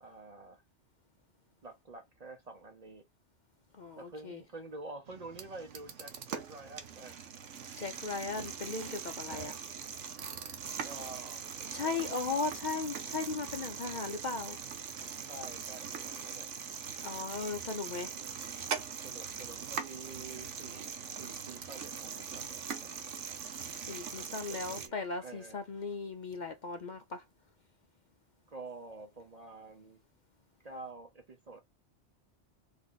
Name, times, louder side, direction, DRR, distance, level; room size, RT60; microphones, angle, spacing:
voice 1, 0.0-0.6 1.6-3.0 4.0-7.2 9.3-9.6 10.8-12.4 15.3-16.5 17.9-18.4 19.0-23.0 24.2-24.9 25.2-25.6 28.5-30.0 30.6-31.6, right 3 dB, 40° right, 0.7 m, -48 dB
voice 2, 3.7-4.4 7.8-9.5 11.7-14.6 17.0-18.1 23.9-27.2, left 4 dB, 50° left, 0.6 m, -37 dB
sound 1, 5.1-24.9, right 7 dB, 85° right, 1.2 m, -41 dB
3.5 x 3.4 x 3.9 m
omnidirectional pair, 1.2 m